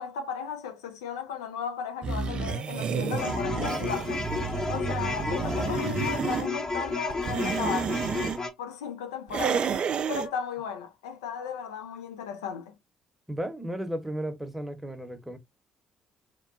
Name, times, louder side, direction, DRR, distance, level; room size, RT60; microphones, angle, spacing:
voice 1, 0.0-4.2 4.7-7.9 8.6-9.7 10.1-12.7, left 7 dB, 80° left, 0.4 m, -35 dB
sound 1, 2.0-6.5 7.1-8.4 9.3-10.3, right 6 dB, 50° right, 0.3 m, -30 dB
sound 2, 3.2-8.5, left 3 dB, 30° left, 0.8 m, -32 dB
voice 2, 13.3-15.4, right 1 dB, 10° right, 0.8 m, -34 dB
2.9 x 2.1 x 2.5 m
hypercardioid pair, 45°, 2 cm